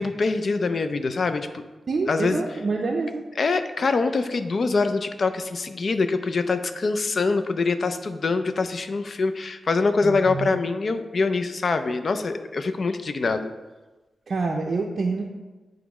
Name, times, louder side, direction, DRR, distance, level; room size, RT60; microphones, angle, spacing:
voice 1, 0.0-1.6 2.1-2.4 3.4-13.5, left 4 dB, 45° left, 9 dB, 0.4 m, -24 dB
voice 2, 1.9-3.2 10.0-10.6 14.3-15.2, right 3 dB, 45° right, 0 dB, 0.5 m, -26 dB
8.0 x 3.1 x 4.8 m, 1.2 s
wide cardioid pair, 160°, 0 cm